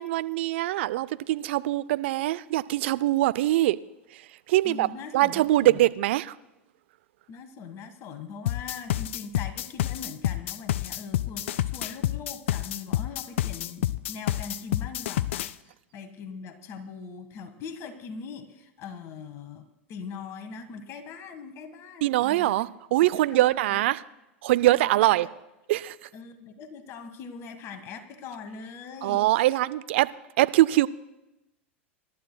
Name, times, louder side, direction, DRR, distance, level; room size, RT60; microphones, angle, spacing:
voice 1, 0.0-3.8 4.5-4.9 5.1-6.3 22.0-24.0 24.4-25.3 25.7-26.1 29.0-30.1 30.4-30.9, right 16 dB, 60° right, 0.4 m, -23 dB
voice 2, 4.6-5.8 7.3-15.5 15.9-22.6 23.3-23.8 24.6-25.1 26.1-29.6, left 5 dB, 40° left, 1.6 m, -41 dB
sound 1, 8.5-15.5, left 13 dB, 65° left, 0.4 m, -28 dB
25.0 x 12.0 x 2.2 m
hypercardioid pair, 95°, 7 cm